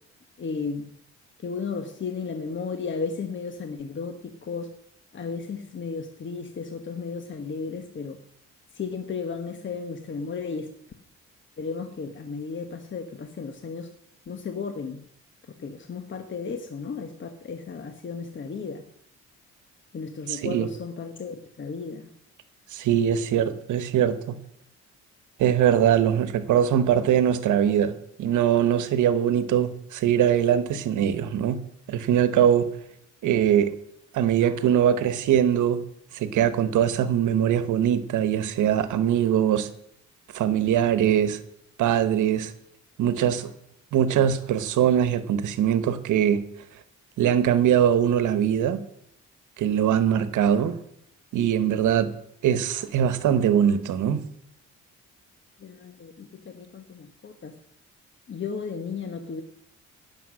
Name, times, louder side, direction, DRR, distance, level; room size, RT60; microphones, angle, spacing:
voice 1, 0.4-0.9 1.4-4.7 5.1-8.2 8.7-10.7 11.6-13.9 14.3-15.0 15.6-18.8 19.9-22.1 55.6-57.5 58.3-59.4, left 5 dB, 40° left, 1.2 m, -34 dB
voice 2, 20.3-20.7 22.7-24.4 25.4-32.7 33.2-33.7 34.1-35.8 36.1-39.7 40.3-41.4 41.8-42.5 43.0-43.5 43.9-46.4 47.2-48.8 49.6-50.8 51.3-52.1 52.4-54.2, right 9 dB, 80° right, 1.1 m, -22 dB
17.0 x 7.1 x 6.2 m
cardioid pair, 90°, 30 cm